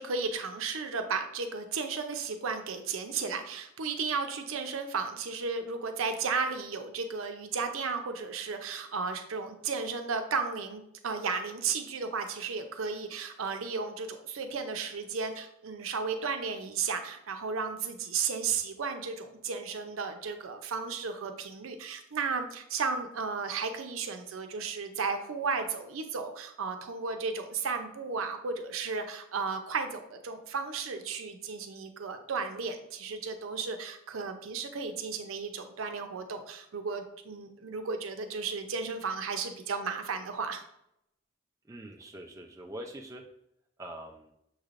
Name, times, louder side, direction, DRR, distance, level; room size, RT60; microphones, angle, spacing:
voice 1, 0.0-40.6, right 5 dB, 85° right, 6 dB, 0.5 m, -34 dB
voice 2, 41.7-43.2 43.8-44.3, right 1 dB, 15° right, 2 dB, 0.3 m, -43 dB
6.3 x 3.2 x 2.5 m, 0.78 s
head